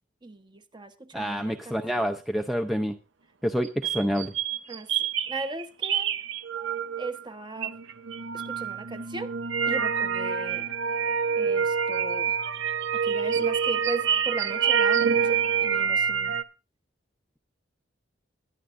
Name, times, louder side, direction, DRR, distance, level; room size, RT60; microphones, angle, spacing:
voice 1, 0.2-2.0 4.7-6.1 7.0-7.8 8.3-9.3 9.6-10.7 11.3-12.3 12.9-16.3, right 3 dB, 25° right, 1.0 m, -37 dB
voice 2, 1.1-3.0 3.4-4.3, equal, ahead, 0.5 m, -27 dB
sound 1, 3.6-7.2 7.6-16.4, right 7 dB, 65° right, 0.7 m, -27 dB
20.5 x 11.0 x 2.5 m
head